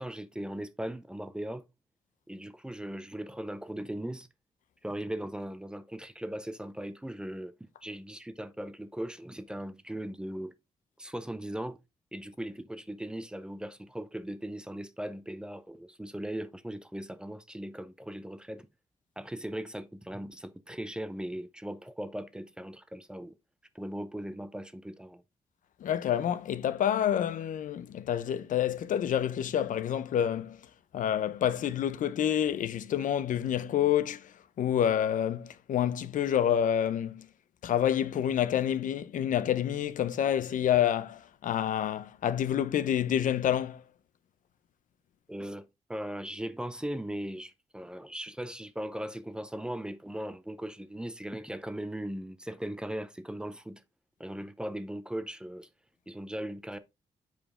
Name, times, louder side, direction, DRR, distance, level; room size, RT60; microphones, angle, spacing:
voice 1, 0.0-1.6 2.3-4.3 4.8-10.5 11.0-11.8 12.1-18.7 19.2-23.4 23.7-25.2 45.3-53.8 54.2-55.7 56.1-56.8, right 1 dB, 5° right, 0.5 m, -38 dB
voice 2, 25.8-30.6 30.9-34.3 34.6-37.3 37.6-43.8, left 10 dB, 85° left, 0.7 m, -28 dB
7.1 x 5.0 x 3.7 m
wide cardioid pair, 155°, 13 cm